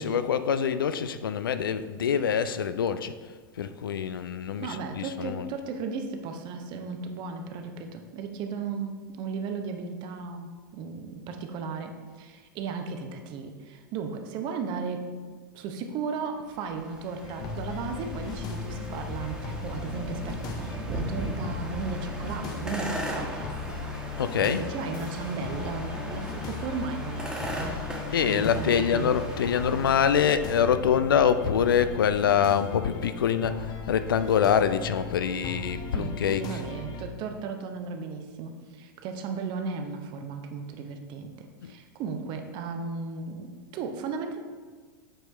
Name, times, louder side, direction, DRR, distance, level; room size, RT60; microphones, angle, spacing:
voice 1, 0.0-3.1 3.6-5.5 24.2-24.6 28.1-36.6 41.6-41.7, left 8 dB, 75° left, 12 dB, 0.4 m, -25 dB
voice 2, 4.6-15.1 15.5-23.9 24.4-27.8 28.3-29.2 35.9-44.4, right 5 dB, 40° right, 5 dB, 0.8 m, -35 dB
sound 1, 16.5-30.5, right 1 dB, 5° right, 1.4 m, -38 dB
sound 2, 17.2-37.0, left 5 dB, 35° left, 0.8 m, -37 dB
sound 3, 22.7-32.3, right 2 dB, 75° right, 0.9 m, -46 dB
7.7 x 4.6 x 3.3 m, 1.5 s
figure-of-eight pair, 95°, 12 cm